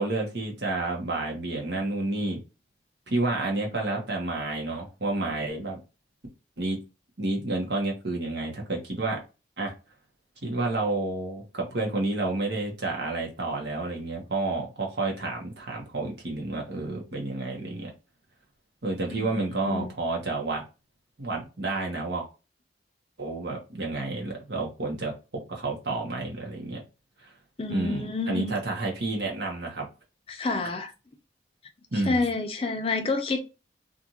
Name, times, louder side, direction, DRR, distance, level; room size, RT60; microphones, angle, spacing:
voice 1, 0.0-2.4 3.1-5.8 6.6-6.8 7.2-9.2 9.6-9.7 10.4-17.9 18.8-20.6 21.2-22.3 23.2-26.8 27.2-27.3 27.7-29.8 31.9-32.2, right 2 dB, 70° right, 1.0 m, -30 dB
voice 2, 19.1-19.9 27.6-28.6 30.3-30.9 31.9-33.4, left 3 dB, 30° left, 0.5 m, -29 dB
2.6 x 2.5 x 2.8 m
head